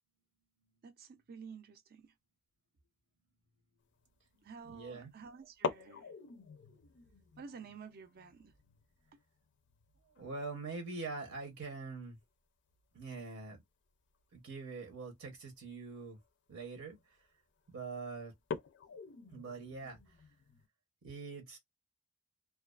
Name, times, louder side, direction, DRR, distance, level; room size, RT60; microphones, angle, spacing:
voice 1, 0.8-2.1 4.4-6.1 7.4-8.5 9.1-9.2, right 5 dB, 45° right, 0.4 m, -51 dB
sound 1, 4.0-4.3 5.5-11.9 12.2-12.3 12.7-13.0 14.0-14.2 14.9-15.0 15.5-15.6 15.9-16.3 16.9-17.2 17.6-17.7 18.3-20.7, left 5 dB, 55° left, 0.4 m, -45 dB
voice 2, 4.6-5.1 10.1-12.2 12.9-13.6 14.3-16.2 16.5-17.2 17.7-18.3 19.3-20.2 21.0-21.6, right 4 dB, 70° right, 0.8 m, -44 dB
2.3 x 2.3 x 2.3 m
head